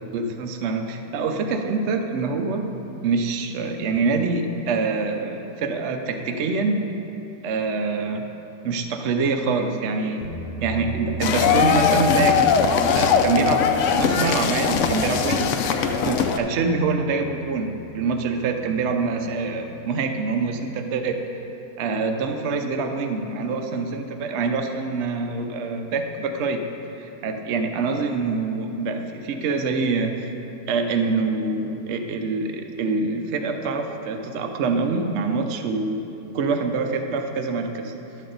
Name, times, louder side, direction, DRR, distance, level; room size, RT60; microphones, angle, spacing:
voice 1, 0.1-2.7 3.0-6.9 7.4-8.3 8.6-10.3 10.6-12.6 12.9-15.5 15.9-21.2 21.8-26.6 27.0-30.3 30.7-36.1 36.3-37.9, right 4 dB, 65° right, 5 dB, 0.7 m, -25 dB
sound 1, 10.2-19.1, right 7 dB, 35° right, 1.7 m, -37 dB
sound 2, 11.2-16.4, left 6 dB, 75° left, 0.7 m, -20 dB
12.0 x 7.3 x 3.9 m, 2.9 s
omnidirectional pair, 1.8 m